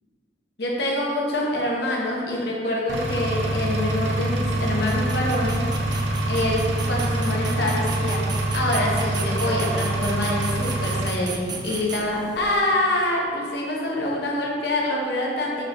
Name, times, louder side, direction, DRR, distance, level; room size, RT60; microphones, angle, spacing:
voice 1, 0.6-5.6 6.3-8.3 8.5-15.6, left 1 dB, 65° left, -3 dB, 1.2 m, -25 dB
Engine, 2.9-11.0, right 1 dB, 80° right, 0.8 m, -25 dB
sound 1, 3.4-12.6, right 5 dB, 25° right, 0.3 m, -38 dB
6.5 x 5.1 x 3.1 m, 2.2 s
head